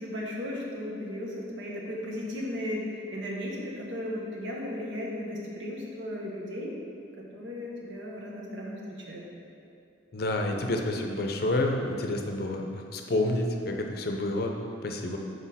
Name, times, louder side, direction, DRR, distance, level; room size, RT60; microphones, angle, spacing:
voice 1, 0.0-6.7 7.2-9.3, left 1 dB, 70° right, -2 dB, 1.1 m, -36 dB
voice 2, 10.1-14.5 14.8-15.2, left 1 dB, 50° left, 3 dB, 0.5 m, -29 dB
6.1 x 4.9 x 4.1 m, 2.5 s
head